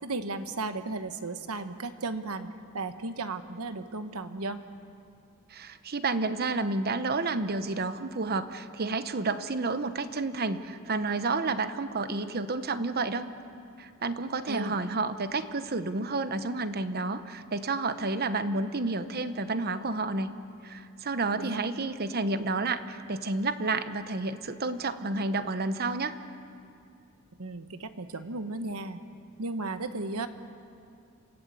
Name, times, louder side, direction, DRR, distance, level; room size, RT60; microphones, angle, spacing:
voice 1, 0.0-4.6 14.5-14.7 21.4-21.6 27.4-29.0 29.4-30.3, right 3 dB, 80° right, 9 dB, 1.2 m, -35 dB
voice 2, 5.5-13.3 13.8-20.3 20.6-26.2, right 3 dB, 45° right, 11 dB, 0.9 m, -30 dB
28.0 x 15.5 x 8.3 m, 2.4 s
head